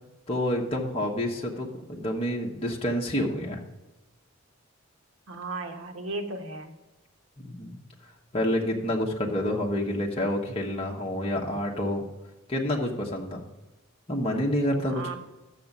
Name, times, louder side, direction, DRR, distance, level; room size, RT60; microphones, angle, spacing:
voice 1, 0.3-3.6 7.4-7.8 8.3-12.0 12.5-13.4 14.1-15.1, left 1 dB, 25° left, -1 dB, 1.1 m, -28 dB
voice 2, 5.3-6.7 14.8-15.1, right 2 dB, 75° right, 5 dB, 1.1 m, -35 dB
6.8 x 6.6 x 7.1 m, 1.1 s
head